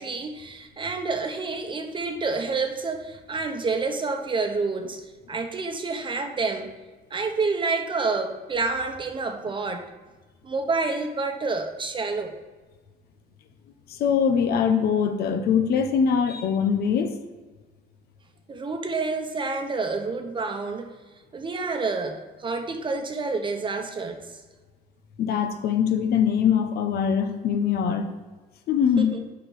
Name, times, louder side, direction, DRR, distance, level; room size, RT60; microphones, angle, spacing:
voice 1, 0.0-5.0 5.3-6.7 7.1-9.9 10.4-12.3 18.5-20.9 21.3-24.4 29.0-29.2, right 4 dB, 30° right, 5 dB, 1.0 m, -28 dB
voice 2, 13.9-17.2 25.2-28.1 28.7-29.1, left 7 dB, 70° left, 7 dB, 0.9 m, -22 dB
7.1 x 5.2 x 6.1 m, 1.3 s
cardioid pair, 110°, 17 cm